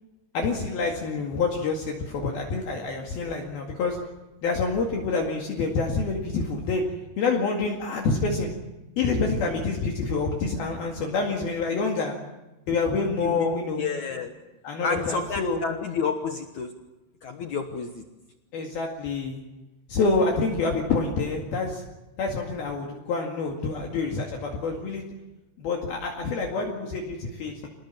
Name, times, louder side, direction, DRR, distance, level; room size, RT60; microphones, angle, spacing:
voice 1, 0.3-4.0 4.4-6.8 7.2-8.5 9.0-12.2 12.7-13.9 14.6-15.6 18.5-19.4 19.9-21.8 22.2-25.1 25.6-27.7, left 4 dB, 60° left, 0 dB, 3.7 m, -27 dB
voice 2, 13.8-14.3 14.8-16.7 17.2-18.0, left 5 dB, 75° left, 5 dB, 1.7 m, -30 dB
27.0 x 19.5 x 7.4 m, 1.1 s
omnidirectional pair, 5.5 m